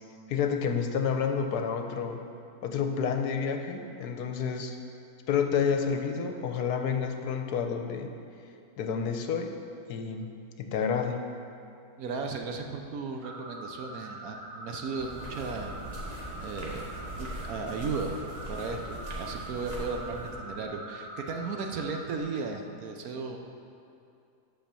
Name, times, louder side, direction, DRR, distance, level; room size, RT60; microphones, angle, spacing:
voice 1, 0.3-2.2 2.6-4.8 5.3-8.1 8.8-9.6 9.9-10.3 10.6-11.3, left 6 dB, 75° left, 5 dB, 1.2 m, -29 dB
voice 2, 12.0-15.7 16.4-16.9 17.2-18.2 18.5-23.4, right 4 dB, 65° right, 4 dB, 1.1 m, -35 dB
sound 1, 13.2-22.2, right 2 dB, 45° right, 0.6 m, -43 dB
sound 2, 15.0-20.3, equal, 25° right, 1.4 m, -41 dB
8.7 x 5.7 x 6.8 m, 2.6 s
omnidirectional pair, 1.7 m